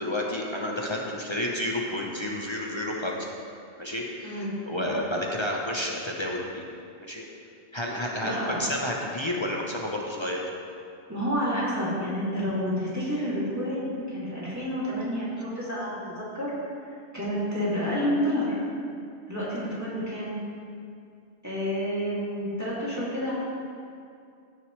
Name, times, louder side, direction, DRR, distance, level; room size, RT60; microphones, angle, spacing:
voice 1, 0.0-3.3 3.8-6.6 7.0-7.2 7.7-10.4, left 1 dB, 25° left, -2 dB, 0.9 m, -30 dB
voice 2, 8.2-8.6 11.1-16.5 17.1-18.6 19.3-20.3 21.4-23.3, equal, 15° right, -9 dB, 2.8 m, -29 dB
15.5 x 6.6 x 3.3 m, 2.4 s
omnidirectional pair, 1.2 m